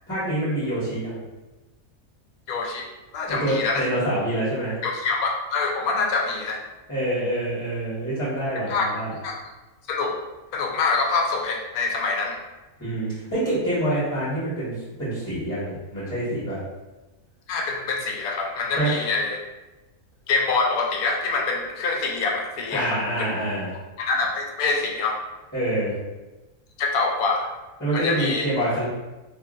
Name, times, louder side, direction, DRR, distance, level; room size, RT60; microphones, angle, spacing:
voice 1, 0.1-1.2 3.3-4.8 6.9-9.1 12.8-16.6 18.8-18.9 22.7-23.7 25.5-25.9 27.8-28.8, right 1 dB, 15° left, -15 dB, 1.3 m, -26 dB
voice 2, 2.5-2.9 3.1-3.9 4.8-6.6 8.7-8.9 9.2-9.4 9.9-10.1 10.5-12.4 17.5-19.4 20.3-23.3 24.0-25.2 26.8-27.5 27.9-28.4, left 4 dB, 90° left, 0 dB, 1.1 m, -25 dB
2.8 x 2.7 x 2.5 m, 1.1 s
omnidirectional pair, 1.5 m